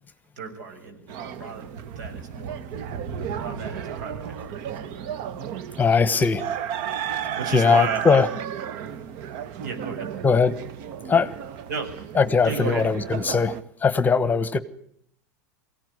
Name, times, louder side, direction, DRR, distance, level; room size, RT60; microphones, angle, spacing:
voice 1, 0.4-1.7 2.0-2.6 3.3-4.6 7.3-8.2 9.6-10.1 11.7-11.9 12.4-12.9, right 5 dB, 80° right, 5 dB, 6.7 m, -33 dB
sound 1, 1.1-13.6, right 8 dB, 55° right, 1.5 m, -34 dB
voice 2, 5.8-6.4 7.5-8.3 10.2-10.5 11.1-11.3 12.2-14.6, left 5 dB, 20° left, 16 dB, 1.3 m, -20 dB
22.5 x 16.5 x 9.7 m, 0.71 s
hypercardioid pair, 110°, 10 cm